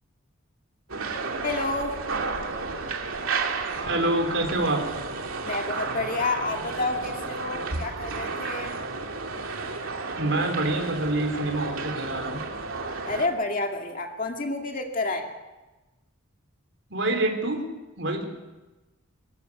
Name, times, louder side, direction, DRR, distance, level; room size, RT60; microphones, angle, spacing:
sound 1, 0.9-13.3, right 4 dB, 75° right, 2.4 m, -32 dB
voice 1, 1.4-2.0 5.4-8.7 13.1-15.3, left 3 dB, 40° left, 3 dB, 2.3 m, -29 dB
voice 2, 3.8-4.9 10.1-12.4 16.9-17.6 18.0-18.2, right 2 dB, 60° right, 3 dB, 3.8 m, -26 dB
24.5 x 14.0 x 8.5 m, 1.1 s
head